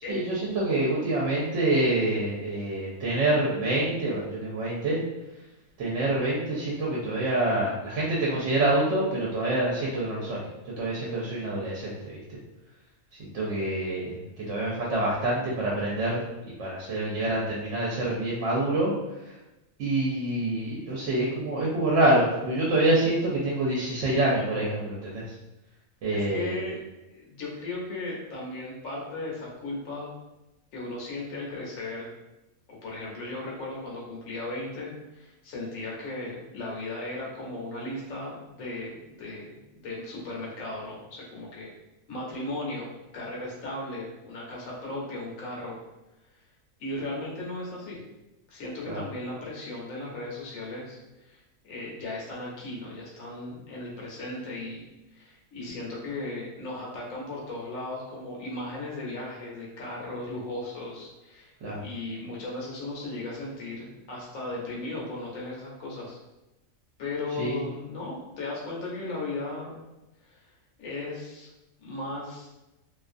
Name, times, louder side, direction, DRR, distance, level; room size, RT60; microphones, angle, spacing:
voice 1, 0.1-5.0 5.8-12.4 13.2-16.2 16.6-19.3 19.8-25.3 26.0-26.5 48.9-49.0 61.6-61.8 67.4-67.6, right 2 dB, 65° right, -5 dB, 0.9 m, -26 dB
voice 2, 26.1-26.8 27.1-30.1 30.7-32.1 32.7-41.7 42.1-45.8 46.8-48.0 48.5-61.5 61.8-66.2 67.0-69.9 70.2-70.4 70.8-71.5 71.8-72.5, left 2 dB, 75° left, -4 dB, 1.1 m, -36 dB
2.5 x 2.4 x 2.4 m, 0.99 s
omnidirectional pair, 1.4 m